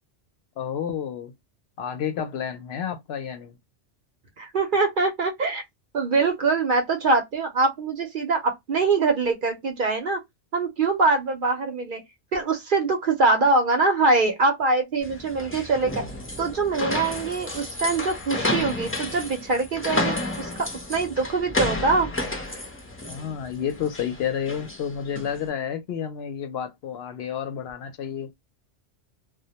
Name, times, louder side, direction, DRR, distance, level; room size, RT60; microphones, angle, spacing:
voice 1, 0.6-1.3 1.8-3.6 23.1-28.3, left 8 dB, 65° left, 0.8 m, -30 dB
voice 2, 4.4-5.6 5.9-10.2 10.5-12.0 12.3-15.9 16.4-20.5 20.9-22.1, right 3 dB, 55° right, 0.7 m, -23 dB
sound 1, 15.0-25.4, left 2 dB, 15° left, 0.4 m, -31 dB
2.1 x 2.1 x 2.8 m
omnidirectional pair, 1.2 m